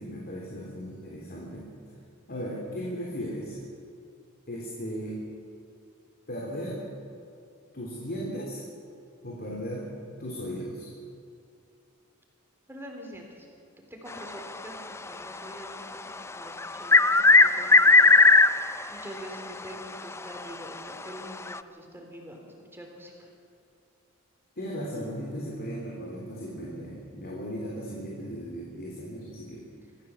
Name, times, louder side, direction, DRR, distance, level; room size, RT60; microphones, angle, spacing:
voice 1, 0.0-1.7 2.3-3.6 4.5-5.2 6.3-6.8 7.7-8.6 9.2-9.9 10.2-10.9 24.6-29.6, equal, 45° left, -3 dB, 3.5 m, -36 dB
voice 2, 12.7-13.5 13.8-16.1 16.4-18.4 18.9-23.3 29.8-29.9, equal, 10° right, 1 dB, 3.7 m, -45 dB
sound 1, 16.6-18.8 19.2-19.3 20.2-20.3 21.5-21.6, left 3 dB, 10° left, 0.5 m, -16 dB
25.5 x 15.0 x 7.3 m, 2.5 s
head